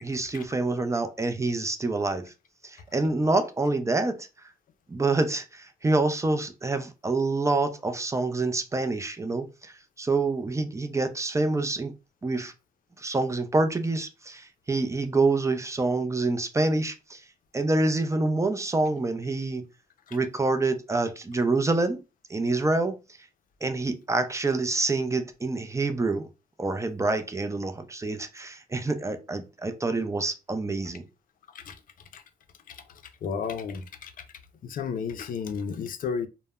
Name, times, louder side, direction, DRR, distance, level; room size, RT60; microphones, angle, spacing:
voice 1, 0.0-2.3 2.6-4.3 4.9-11.9 12.2-12.5 13.0-17.2 17.5-19.7 20.1-22.0 22.3-23.0 23.6-26.3 26.6-31.0, right 3 dB, 20° right, 0.4 m, -27 dB
voice 2, 33.2-34.1 34.6-36.3, left 6 dB, 75° left, 0.4 m, -32 dB
2.1 x 2.0 x 3.4 m
cardioid pair, 75°, 15 cm